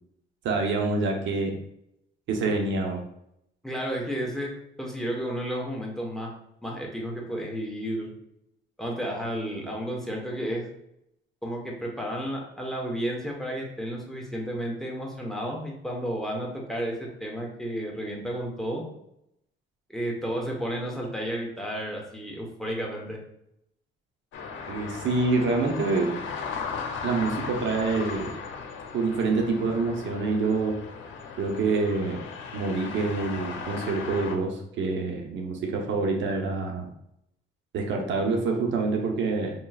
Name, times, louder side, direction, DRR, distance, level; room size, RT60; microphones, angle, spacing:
voice 1, 0.4-1.5 2.3-3.0 24.7-26.1 27.0-28.3 28.9-30.7 31.4-32.2 32.5-36.9 37.7-39.5, right 3 dB, 70° right, 2 dB, 0.8 m, -26 dB
voice 2, 3.6-4.5 4.8-6.3 6.6-8.1 8.8-10.7 11.4-18.9 19.9-23.2, equal, ahead, -2 dB, 1.1 m, -32 dB
sound 1, 24.3-34.3, left 5 dB, 75° left, 0.8 m, -37 dB
5.4 x 3.0 x 2.4 m, 0.78 s
cardioid pair, 90°, 20 cm